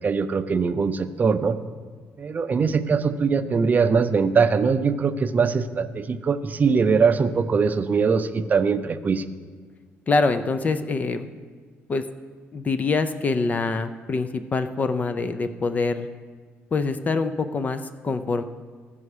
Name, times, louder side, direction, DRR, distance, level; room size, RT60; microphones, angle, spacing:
voice 1, 0.0-1.6 2.2-9.2, right 5 dB, 35° right, 10 dB, 0.5 m, -22 dB
voice 2, 10.1-11.3 11.9-12.0 12.5-16.1 16.7-18.4, left 4 dB, 30° left, 10 dB, 0.4 m, -25 dB
15.5 x 5.5 x 4.9 m, 1.5 s
cardioid pair, 115°, 5 cm